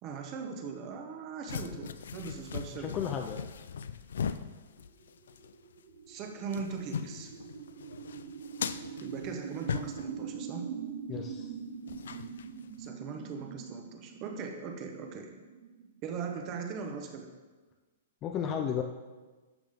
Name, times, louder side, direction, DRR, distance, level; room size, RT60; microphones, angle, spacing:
voice 1, 0.0-3.1 6.1-7.3 9.0-10.7 12.8-15.3 16.0-17.3, right 5 dB, 25° right, 4 dB, 1.0 m, -40 dB
sound 1, 1.5-5.5 5.8-5.9 6.3-10.3 11.9-12.9, left 7 dB, 80° left, 0.5 m, -39 dB
voice 2, 2.7-3.4 11.1-11.5 18.2-18.8, left 8 dB, 20° left, 4 dB, 0.4 m, -33 dB
sound 2, 4.9-17.0, right 7 dB, 55° right, 1.1 m, -44 dB
12.0 x 7.1 x 3.6 m, 1.3 s
hypercardioid pair, 175°, 0 cm